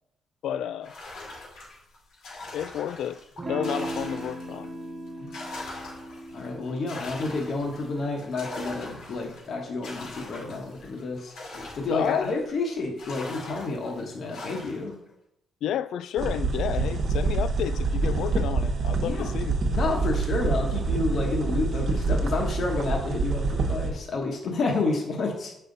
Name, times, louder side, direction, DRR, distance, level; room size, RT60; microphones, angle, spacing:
voice 1, 0.4-0.9 2.5-3.2 3.5-4.7 11.9-12.3 15.6-19.6, left 10 dB, 70° left, 0.4 m, -31 dB
sound 1, 0.8-4.7 5.1-12.6 13.0-14.9, left 2 dB, 90° left, 2.8 m, -42 dB
Electric guitar / Strum, 3.4-8.5, right 1 dB, 30° right, 1.3 m, -38 dB
voice 2, 6.3-11.3 11.8-15.0 19.0-19.3 19.7-25.5, left 3 dB, 45° left, 1.2 m, -30 dB
sound 2, 16.2-23.9, right 3 dB, 50° right, 1.1 m, -26 dB
8.2 x 5.6 x 3.9 m
cardioid pair, 175°, 0 cm